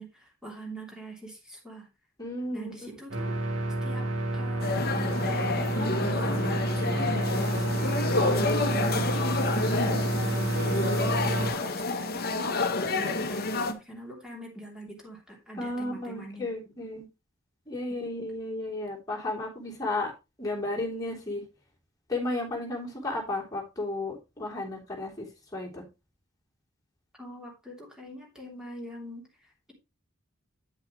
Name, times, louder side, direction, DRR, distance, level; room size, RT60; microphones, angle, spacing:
voice 1, 0.0-1.9 2.5-3.3 3.8-6.5 6.7-11.3 11.6-12.6 13.0-16.7 27.2-29.7, right 1 dB, 5° right, -1 dB, 3.0 m, -43 dB
voice 2, 2.2-2.7 15.6-17.1 17.7-20.1 20.4-21.4 22.1-25.3 25.5-25.8, left 2 dB, 15° left, -3 dB, 3.3 m, -33 dB
sound 1, 3.1-11.5, right 1 dB, 65° right, 2.2 m, -29 dB
sound 2, 4.6-13.7, left 3 dB, 45° left, 1.0 m, -29 dB
8.9 x 8.0 x 3.1 m, 0.25 s
head